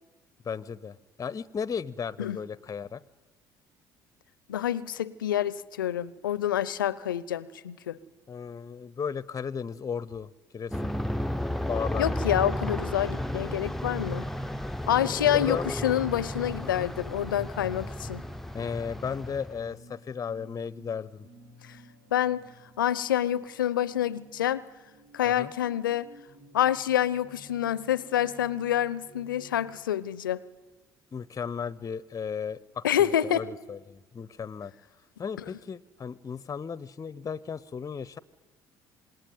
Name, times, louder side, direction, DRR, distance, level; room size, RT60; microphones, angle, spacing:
voice 1, 0.4-3.0 8.3-10.3 10.5-10.9 11.7-12.0 15.0-15.7 16.6-16.9 18.5-21.3 25.2-25.5 31.1-34.7 35.2-38.2, left 6 dB, 30° left, 21 dB, 0.8 m, -35 dB
voice 2, 4.5-8.0 12.0-14.3 14.9-18.2 22.1-22.4 22.8-24.6 25.1-26.1 26.5-30.4 32.8-33.4 35.4-35.5, left 11 dB, 85° left, 21 dB, 0.7 m, -27 dB
Aircraft, 10.7-19.7, left 1 dB, 5° left, 0.9 m, -33 dB
sound 1, 19.5-29.7, right 2 dB, 70° right, 3.9 m, -54 dB
26.5 x 20.0 x 9.3 m, 1.2 s
figure-of-eight pair, 55°, 11 cm